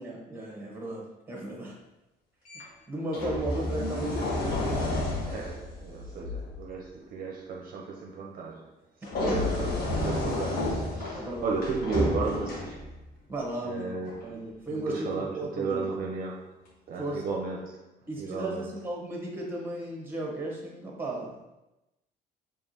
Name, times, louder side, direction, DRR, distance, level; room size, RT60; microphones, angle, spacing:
voice 1, 0.0-1.7 2.9-5.1 9.2-9.4 11.1-11.6 13.3-13.9 14.2-15.8 17.0-17.3 18.1-21.4, right 1 dB, 15° right, 1.1 m, -35 dB
sound 1, 2.5-2.6 3.1-6.6 9.0-13.1 14.1-14.3, left 2 dB, 60° left, 1.2 m, -31 dB
voice 2, 5.3-8.7 9.1-12.8 13.6-14.4 14.7-18.7, right 4 dB, 55° right, 0.6 m, -34 dB
4.5 x 2.9 x 2.7 m
cardioid pair, 110°, 17 cm